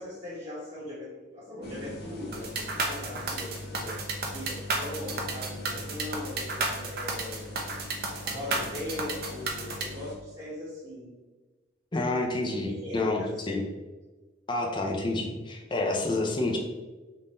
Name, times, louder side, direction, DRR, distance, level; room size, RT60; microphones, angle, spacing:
voice 1, 0.0-2.5 2.8-7.6 7.9-11.1 12.6-13.6, left 1 dB, 30° right, -12 dB, 1.4 m, -40 dB
sound 1, 1.6-10.2, left 2 dB, 55° left, 0.8 m, -42 dB
sound 2, 2.3-9.9, right 3 dB, 55° right, 0.7 m, -32 dB
voice 2, 11.9-13.6 14.5-16.6, left 2 dB, 25° left, 0 dB, 0.5 m, -29 dB
3.7 x 2.6 x 4.2 m, 1.2 s
head